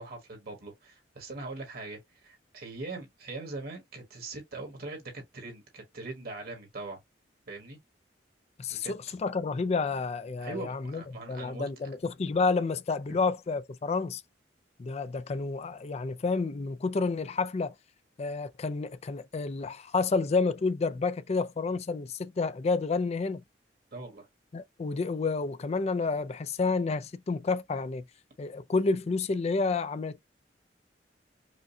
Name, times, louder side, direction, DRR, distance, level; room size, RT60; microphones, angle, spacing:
voice 1, 0.0-7.0 7.5-7.8 8.7-9.2 10.4-11.7 13.1-13.2 23.9-24.3, right 3 dB, 60° right, 1.5 m, -41 dB
voice 2, 8.6-11.0 11.3-14.2 14.8-17.7 18.2-23.4 24.5-28.0 28.4-30.2, left 4 dB, 35° left, 0.4 m, -30 dB
5.0 x 2.2 x 2.6 m
head